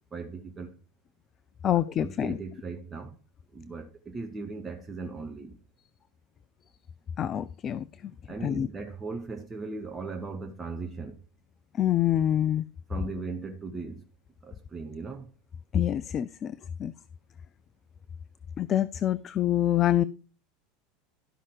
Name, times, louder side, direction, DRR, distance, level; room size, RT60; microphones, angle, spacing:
voice 1, 0.1-0.8 1.7-3.2 3.5-5.6 8.2-11.2 12.9-14.0 14.4-15.3, right 4 dB, 20° right, 1.0 m, -38 dB
voice 2, 1.6-2.3 7.2-7.8 8.4-8.7 11.8-12.6 15.7-16.5 16.8-16.9 18.6-20.0, left 11 dB, 35° left, 0.4 m, -26 dB
12.0 x 5.6 x 4.8 m
figure-of-eight pair, 75°, 0 cm